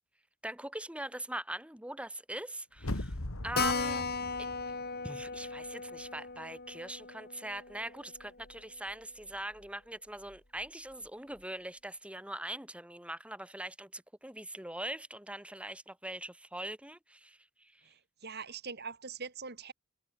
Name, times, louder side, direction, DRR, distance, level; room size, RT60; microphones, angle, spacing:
voice 1, 0.4-3.1 3.4-4.1 5.0-17.8, right 1 dB, 5° right, 3.2 m, -42 dB
sound 1, 2.8-5.7 6.0-6.1, left 1 dB, 85° left, 2.5 m, -41 dB
Keyboard (musical), 3.6-8.6 8.9-9.0 9.3-9.4 9.6-9.7 10.3-10.6, left 4 dB, 50° left, 7.8 m, -37 dB
voice 2, 17.8-19.7, right 5 dB, 50° right, 3.7 m, -43 dB
head